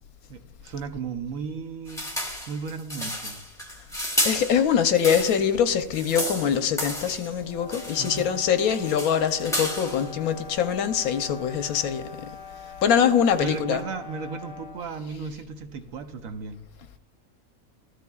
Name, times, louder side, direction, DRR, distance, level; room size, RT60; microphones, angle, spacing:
voice 1, 0.3-2.1 2.5-3.4 8.0-8.3 13.4-16.6, right 5 dB, 70° right, 1.2 m, -35 dB
sound 1, 1.9-5.5 5.8-7.3 7.7-8.3 8.6-10.1, equal, 5° left, 1.0 m, -32 dB
voice 2, 4.2-12.3 12.8-13.8, left 8 dB, 90° left, 1.2 m, -23 dB
sound 2, 7.4-14.9, left 6 dB, 35° left, 0.9 m, -43 dB
14.0 x 13.0 x 2.3 m
omnidirectional pair, 1.5 m